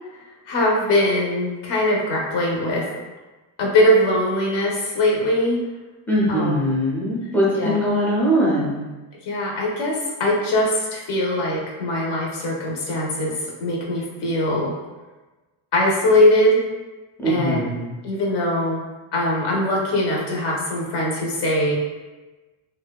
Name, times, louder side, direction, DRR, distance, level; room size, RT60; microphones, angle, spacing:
voice 1, 0.5-2.9 3.6-5.6 6.3-6.5 7.5-7.8 9.3-14.8 15.7-16.6 17.2-17.6 18.0-18.8 19.1-21.8, left 1 dB, 60° left, -2 dB, 0.7 m, -21 dB
voice 2, 6.1-8.8 17.2-17.9, equal, 5° left, -6 dB, 0.4 m, -21 dB
2.6 x 2.2 x 2.2 m, 1.2 s
cardioid pair, 165°, 47 cm